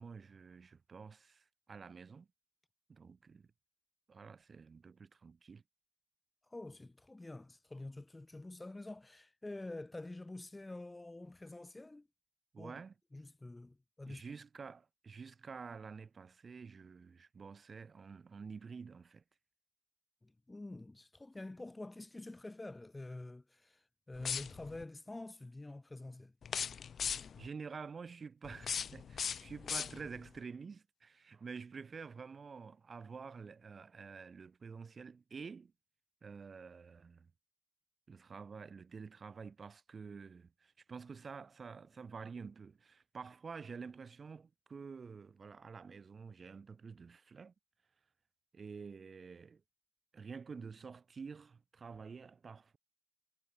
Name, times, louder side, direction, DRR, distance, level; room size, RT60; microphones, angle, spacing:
voice 1, 0.0-2.3 2.9-3.5 4.1-5.6 12.5-12.9 14.1-19.2 27.4-35.7 36.2-37.3 38.1-47.5 48.5-49.6 50.1-52.8, right 5 dB, 35° right, 3.6 m, -49 dB
voice 2, 6.5-12.1 12.6-12.8 13.1-14.2 20.2-26.3, left 2 dB, 15° left, 2.2 m, -47 dB
sound 1, 24.1-24.8 26.4-27.5 28.4-30.3, left 7 dB, 45° left, 1.0 m, -39 dB
cardioid pair, 85°, 0 cm